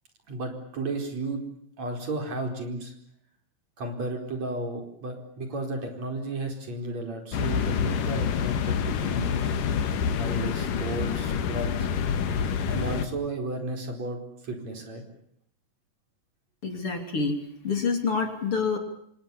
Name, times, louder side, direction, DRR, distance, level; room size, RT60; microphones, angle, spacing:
voice 1, 0.3-1.4 1.8-2.9 3.8-9.5 10.2-11.9 12.7-15.0, right 2 dB, 55° right, 4 dB, 5.8 m, -33 dB
sound 1, 7.3-13.1, left 7 dB, 80° left, 3.3 m, -27 dB
voice 2, 16.6-17.4 17.6-18.8, left 5 dB, 45° left, 5 dB, 3.7 m, -27 dB
29.0 x 26.0 x 7.2 m, 0.70 s
omnidirectional pair, 3.7 m